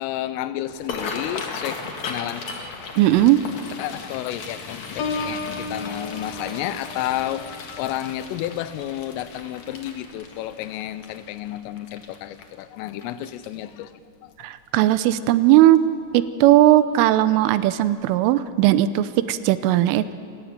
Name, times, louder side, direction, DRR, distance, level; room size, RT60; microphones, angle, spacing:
voice 1, 0.0-2.8 3.8-13.9 14.2-14.3, left 13 dB, 85° left, 14 dB, 3.5 m, -31 dB
sound 1, 0.7-13.8 14.3-14.6 14.9-15.3 15.8-15.9 17.1-17.3 17.7-17.8 18.3-18.4, left 4 dB, 50° left, 2.5 m, -37 dB
voice 2, 3.0-3.5 14.4-15.9 16.1-20.1, right 14 dB, 90° right, 14 dB, 3.3 m, -17 dB
Piano, 5.0-10.6 11.1-11.4, left 3 dB, 65° left, 2.7 m, -36 dB
27.5 x 16.0 x 9.1 m, 2.5 s
omnidirectional pair, 5.7 m